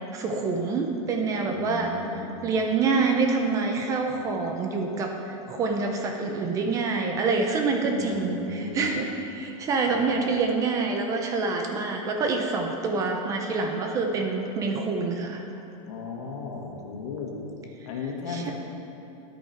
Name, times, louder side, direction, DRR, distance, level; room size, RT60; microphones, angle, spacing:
voice 1, 0.1-15.4 18.3-18.5, right 4 dB, 20° right, 3 dB, 0.5 m, -26 dB
voice 2, 1.5-2.4 7.8-8.9 9.9-10.1 15.9-17.3 17.9-18.5, left 4 dB, 70° left, -1 dB, 2.0 m, -35 dB
9.9 x 8.6 x 4.5 m, 3.0 s
supercardioid pair, 170°, 17 cm